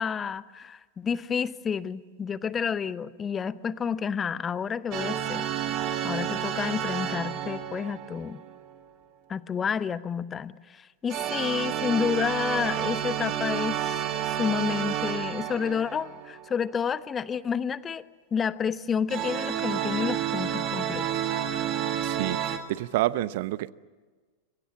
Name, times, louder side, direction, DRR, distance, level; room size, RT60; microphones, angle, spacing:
voice 1, 0.0-5.5 5.8-8.4 9.3-13.9 14.3-18.0 18.3-21.3, left 7 dB, 20° left, 0.8 m, -30 dB
sound 1, 4.9-8.7 11.1-16.5 19.1-22.6, right 10 dB, 35° right, 2.2 m, -30 dB
voice 2, 22.0-23.7, right 16 dB, 50° right, 0.8 m, -29 dB
27.5 x 24.0 x 7.4 m
figure-of-eight pair, 90°, 0 cm